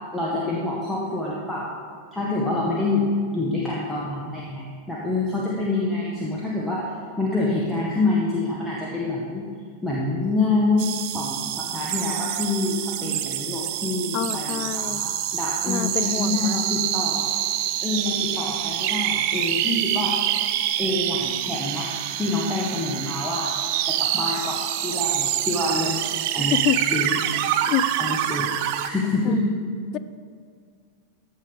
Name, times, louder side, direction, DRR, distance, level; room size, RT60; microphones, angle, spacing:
voice 1, 0.1-1.7 2.1-6.9 7.2-9.5 9.8-17.3 17.8-20.1 20.8-21.9 22.1-23.5 23.8-25.9 26.3-26.6 26.9-27.2 28.0-28.6 28.8-29.6, left 2 dB, 5° left, -5 dB, 1.5 m, -26 dB
sound 1, 10.8-28.9, right 12 dB, 45° right, 0.5 m, -26 dB
voice 2, 14.1-15.0 15.7-16.7 26.4-26.8 27.7-27.9 29.2-29.4, left 11 dB, 35° left, 13 dB, 0.4 m, -27 dB
14.5 x 5.8 x 5.1 m, 2.1 s
figure-of-eight pair, 90°, 0 cm